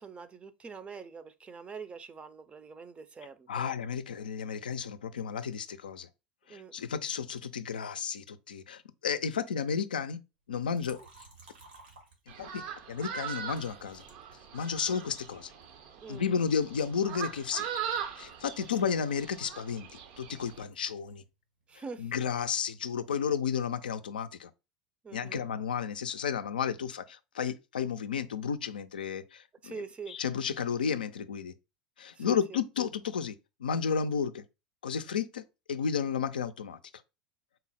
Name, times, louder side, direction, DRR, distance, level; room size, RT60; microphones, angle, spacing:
voice 1, 0.0-3.7 6.5-6.7 16.0-16.2 18.6-18.9 21.7-22.1 25.0-25.4 29.6-30.2 32.2-32.6, right 5 dB, 25° right, 0.5 m, -44 dB
voice 2, 3.5-6.1 6.5-10.2 10.5-11.0 12.4-14.0 14.5-15.5 16.1-17.7 18.1-19.9 20.2-21.2 22.0-24.5 25.1-31.5 32.0-33.4 33.6-34.4 34.8-35.4 35.7-36.8, left 7 dB, 90° left, 0.3 m, -32 dB
Liquid, 10.7-12.7 13.5-15.0 15.6-17.4 17.6-21.3 21.6-23.2, right 2 dB, 85° right, 1.5 m, -59 dB
sound 1, 12.3-20.6, right 8 dB, 65° right, 0.6 m, -41 dB
3.9 x 2.0 x 4.1 m
hypercardioid pair, 90°, 5 cm